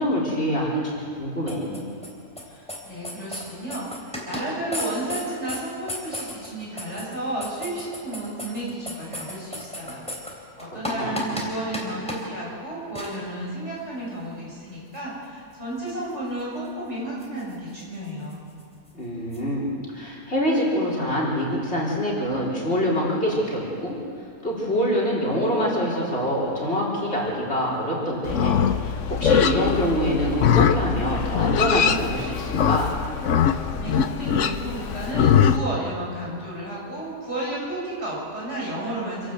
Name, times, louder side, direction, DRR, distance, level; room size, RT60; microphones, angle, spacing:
voice 1, 0.0-1.9 10.6-11.4 18.9-33.0, equal, 45° left, -4 dB, 4.7 m, -25 dB
sound 1, 1.5-2.1 2.4-2.5 2.7-2.8 3.0-4.4 4.7-5.6 5.9-10.3 10.6-11.5 11.7-11.8 12.1-12.2 12.9-13.2 14.9-15.0 17.2-17.5 18.3-18.4 18.6-18.7 19.3-19.4, left 1 dB, 5° left, 3.6 m, -33 dB
voice 2, 2.4-18.4 33.5-39.3, right 1 dB, 50° right, -6 dB, 7.2 m, -32 dB
Livestock farm animals working animals, 28.2-35.6, left 8 dB, 60° left, 1.1 m, -22 dB
27.0 x 12.5 x 8.0 m, 2.3 s
omnidirectional pair, 1.5 m